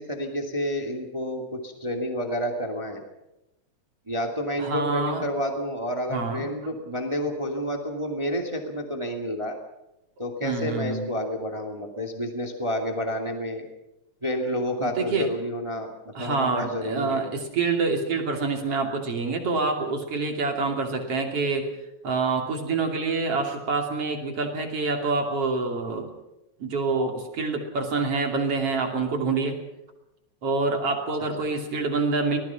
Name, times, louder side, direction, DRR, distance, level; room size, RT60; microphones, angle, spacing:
voice 1, 0.0-3.0 4.1-9.6 10.2-13.7 14.2-17.2, equal, 10° right, 3 dB, 1.9 m, -30 dB
voice 2, 4.6-5.3 6.1-6.5 10.4-11.1 14.8-15.3 16.2-21.7 22.0-26.1 26.6-29.6 30.4-32.4, right 3 dB, 50° right, 3 dB, 3.6 m, -26 dB
25.5 x 19.0 x 5.8 m, 0.91 s
omnidirectional pair, 3.4 m